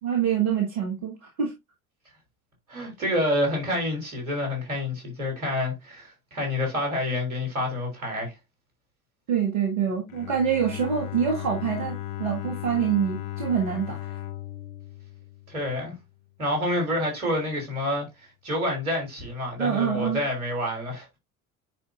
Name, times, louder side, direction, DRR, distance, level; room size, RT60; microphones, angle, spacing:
voice 1, 0.0-1.5 9.3-14.2 19.6-20.2, right 8 dB, 65° right, 2.0 m, -26 dB
voice 2, 2.7-8.3 15.5-15.9 16.4-18.1 18.4-21.1, left 1 dB, 80° right, 3.3 m, -28 dB
Bowed string instrument, 10.1-16.0, left 14 dB, 70° left, 0.7 m, -36 dB
9.8 x 4.4 x 2.6 m
figure-of-eight pair, 65°, 42 cm